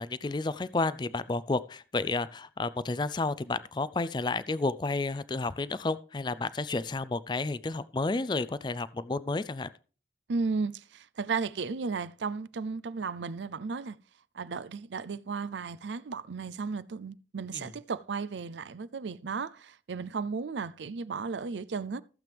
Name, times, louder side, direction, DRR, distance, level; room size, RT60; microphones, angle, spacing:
voice 1, 0.0-9.7 17.5-17.6, left 3 dB, 25° left, 0.4 m, -31 dB
voice 2, 10.3-14.0 14.3-22.0, right 4 dB, 85° right, 0.5 m, -34 dB
15.0 x 7.7 x 3.4 m
head